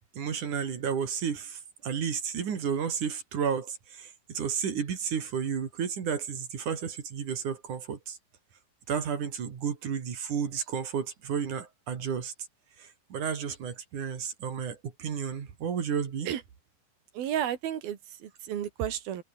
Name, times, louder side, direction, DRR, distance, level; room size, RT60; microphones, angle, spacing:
voice 1, 0.2-8.2 8.9-12.3 12.8-16.3, right 7 dB, 55° right, 4.1 m, -32 dB
voice 2, 17.1-19.2, right 10 dB, 75° right, 4.1 m, -32 dB
omnidirectional pair, 4.3 m